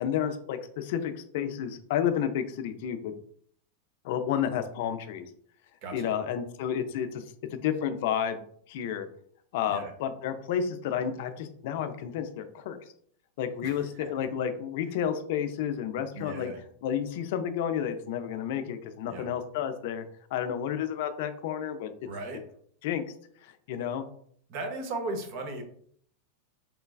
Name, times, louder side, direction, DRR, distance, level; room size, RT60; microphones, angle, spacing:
voice 1, 0.0-3.1 4.0-5.3 5.9-7.2 7.5-8.4 8.7-9.1 9.5-12.8 13.4-16.5 16.8-21.9 22.8-23.0 23.4-24.0, left 9 dB, 65° left, 9 dB, 0.3 m, -31 dB
voice 2, 5.8-6.1 9.7-9.9 13.6-14.1 16.1-16.6 19.1-19.3 22.1-22.4 24.5-25.6, right 2 dB, 50° right, 5 dB, 0.6 m, -37 dB
3.1 x 2.3 x 2.3 m, 0.63 s
supercardioid pair, 125°, 0 cm